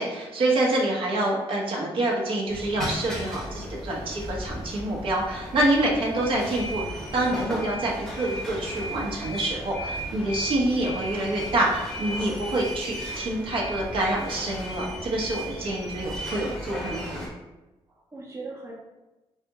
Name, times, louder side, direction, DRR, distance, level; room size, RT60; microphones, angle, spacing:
voice 1, 0.0-6.8 7.1-17.3, right 1 dB, 55° right, -3 dB, 0.9 m, -26 dB
sound 1, 2.5-17.3, equal, ahead, 0.9 m, -35 dB
voice 2, 6.2-6.5 17.9-18.7, right 3 dB, 25° right, -4 dB, 0.7 m, -41 dB
3.3 x 2.9 x 3.6 m, 1.0 s
cardioid pair, 140°, 11 cm